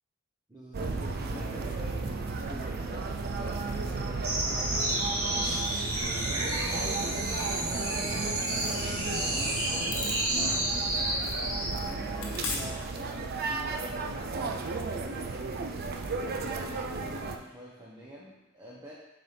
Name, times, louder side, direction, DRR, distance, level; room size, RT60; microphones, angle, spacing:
voice 1, 0.5-5.8 6.0-15.6 16.1-18.9, equal, 15° right, -7 dB, 0.9 m, -47 dB
sound 1, 0.7-17.4, right 3 dB, 50° right, 0.5 m, -34 dB
sound 2, 4.2-11.8, right 1 dB, 80° right, 1.4 m, -31 dB
sound 3, 9.9-15.4, left 4 dB, 65° left, 1.0 m, -43 dB
6.7 x 4.2 x 3.4 m, 0.93 s
head